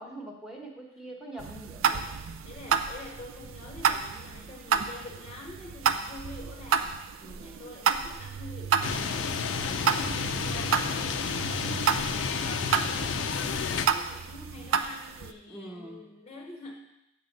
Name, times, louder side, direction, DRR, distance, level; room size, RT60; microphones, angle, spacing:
voice 1, 0.0-1.8 7.2-7.7 9.6-10.0 15.5-16.0, right 1 dB, 5° right, -1 dB, 1.0 m, -43 dB
sound 1, 1.4-15.3, right 6 dB, 80° right, 0.4 m, -31 dB
voice 2, 2.4-7.0 7.2-9.4 9.7-16.7, left 2 dB, 30° left, -1 dB, 0.7 m, -46 dB
sound 2, 8.8-13.9, left 5 dB, 65° left, 0.5 m, -30 dB
7.4 x 4.0 x 6.4 m, 0.87 s
head